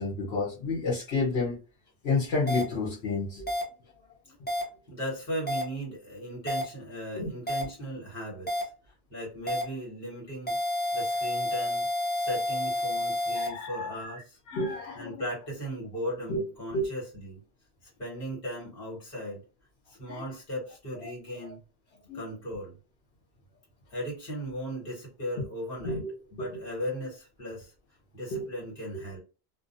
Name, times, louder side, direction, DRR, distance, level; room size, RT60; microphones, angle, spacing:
voice 1, 0.0-1.6 2.0-3.5 7.2-7.3 13.3-14.1 14.5-15.2 16.3-16.4 16.7-16.9 20.1-20.2 22.1-22.2 25.8-26.1 26.4-26.5 28.3-28.4, left 3 dB, 75° left, 1.1 m, -30 dB
sound 1, 2.5-2.6 3.5-3.6 4.5-4.6 5.5-5.6 6.5-6.6 7.5-7.6 8.5-8.6 9.5-9.6 10.5-13.5, left 1 dB, 15° left, 0.4 m, -29 dB
voice 2, 4.9-8.7 9.1-10.6 10.9-11.8 12.1-14.4 14.9-17.4 18.0-19.4 19.9-21.6 22.1-22.8 23.9-26.0 26.3-27.7 28.1-29.2, equal, 60° left, 1.6 m, -37 dB
2.5 x 2.4 x 2.5 m
omnidirectional pair, 1.1 m